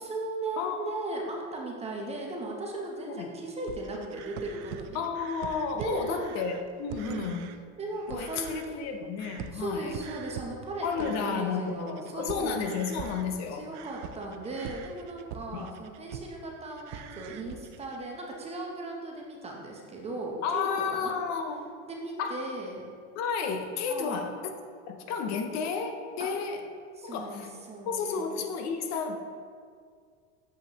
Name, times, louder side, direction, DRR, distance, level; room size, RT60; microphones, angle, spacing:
voice 1, 0.0-5.0 5.8-6.3 7.0-7.3 7.8-8.9 9.5-12.7 13.5-21.1 21.8-22.9 23.9-24.2 26.2-26.3 26.9-28.4, right 2 dB, 15° right, -1 dB, 0.8 m, -37 dB
voice 2, 0.6-1.0 3.1-3.3 4.9-7.4 8.1-9.9 10.8-13.6 15.5-15.7 20.4-21.7 22.2-22.5 23.2-24.4 24.9-26.6 27.0-27.5 27.9-29.2, left 5 dB, 50° left, 5 dB, 0.6 m, -32 dB
sound 1, 3.6-7.6 7.9-8.9 9.2-16.4 16.7-18.1, right 8 dB, 75° right, 0.5 m, -44 dB
7.3 x 5.5 x 2.9 m, 2.1 s
supercardioid pair, 140°, 36 cm